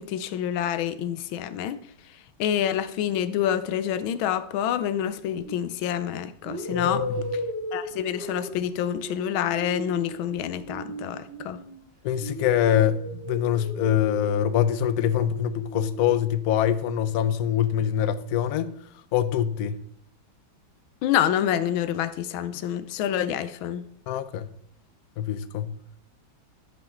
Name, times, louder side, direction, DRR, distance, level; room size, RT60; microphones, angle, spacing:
voice 1, 0.0-1.8 2.4-7.1 7.7-11.6 21.0-23.8, left 10 dB, 90° left, 1.5 m, -27 dB
sound 1, 5.4-5.6 6.4-11.8 12.2-16.1, equal, 30° right, 2.3 m, -36 dB
voice 2, 6.7-7.3 12.0-18.7 19.1-19.8 24.1-24.5 25.2-25.7, left 10 dB, 70° left, 0.9 m, -24 dB
10.5 x 5.8 x 3.8 m
omnidirectional pair, 2.1 m